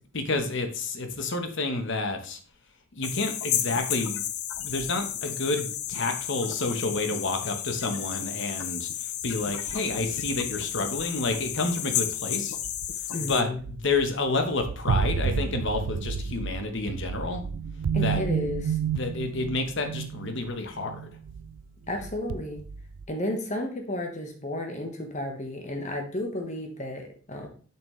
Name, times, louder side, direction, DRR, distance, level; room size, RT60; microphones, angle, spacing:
voice 1, 0.1-2.4 2.9-4.2 4.6-12.6 13.3-17.4 17.9-18.2 18.9-21.1, left 3 dB, 55° left, 6 dB, 1.0 m, -29 dB
sound 1, 3.0-13.4, left 10 dB, 80° left, 0.7 m, -32 dB
sound 2, 4.7-4.8 9.2-11.5 12.6-12.9 13.3-14.1 14.5-21.6 21.9-23.0, right 6 dB, 90° right, 0.4 m, -32 dB
voice 2, 13.1-13.6 17.9-18.8 21.9-22.6 23.1-27.5, left 1 dB, 35° left, 3 dB, 1.2 m, -32 dB
7.2 x 5.9 x 3.2 m, 0.41 s
head